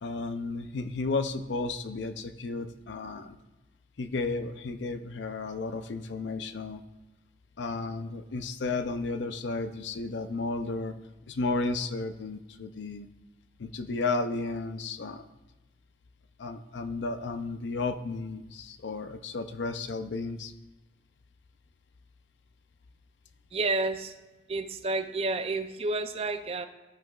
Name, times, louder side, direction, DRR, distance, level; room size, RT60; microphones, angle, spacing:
voice 1, 0.0-3.4 4.0-6.8 7.6-11.0 11.3-13.1 13.6-15.3 16.4-20.5, left 3 dB, 70° left, 8 dB, 0.5 m, -33 dB
voice 2, 23.5-24.1 24.5-26.7, right 3 dB, 30° right, 9 dB, 0.4 m, -30 dB
13.5 x 5.8 x 2.4 m, 1.1 s
head